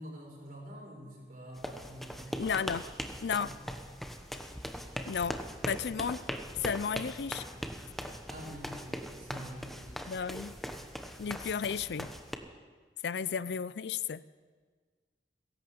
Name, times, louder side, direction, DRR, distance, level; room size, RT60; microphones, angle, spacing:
voice 1, 0.0-2.7 3.4-3.5 8.3-9.9, equal, 55° right, -1 dB, 4.9 m, -46 dB
sound 1, 1.5-12.4, equal, ahead, 0.9 m, -40 dB
voice 2, 2.4-2.8 3.2-3.5 5.1-5.4 5.7-6.2 6.6-7.4 10.1-10.5 11.2-12.1 13.0-14.2, left 6 dB, 70° left, 17 dB, 0.4 m, -33 dB
16.0 x 11.0 x 7.9 m, 1.5 s
head